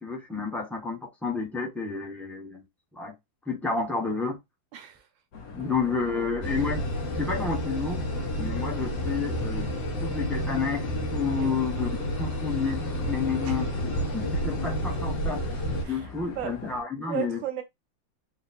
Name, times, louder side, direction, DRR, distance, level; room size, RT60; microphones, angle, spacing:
voice 1, 0.0-2.6 2.9-3.1 3.5-4.4 5.5-6.8 7.2-8.1 8.4-9.7 10.0-10.9 11.1-15.4 15.9-17.4, left 5 dB, ahead, 0.6 m, -30 dB
voice 2, 4.7-5.1 5.6-6.3 11.4-11.6 13.4-13.7 15.8-16.6 17.1-17.6, right 12 dB, 75° right, 1.5 m, -36 dB
sound 1, 5.3-16.8, left 3 dB, 55° left, 1.3 m, -42 dB
sound 2, 6.4-15.8, equal, 70° left, 1.9 m, -30 dB
4.0 x 2.3 x 4.2 m
omnidirectional pair, 2.1 m